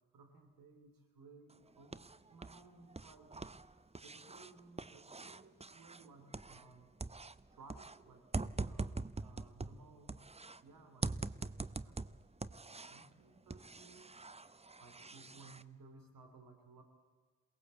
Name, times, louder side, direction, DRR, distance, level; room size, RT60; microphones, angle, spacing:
voice 1, 0.1-3.4 3.6-6.9 7.5-11.2 11.7-12.0 12.6-14.3 14.8-16.8, right 3 dB, 80° right, 6 dB, 3.2 m, -60 dB
sound 1, 1.5-2.6 2.9-6.7 7.0-10.6 11.0-13.1 13.5-15.6, right 3 dB, 20° right, 0.7 m, -44 dB
22.0 x 18.0 x 8.1 m, 1.5 s
supercardioid pair, 40°, 34 cm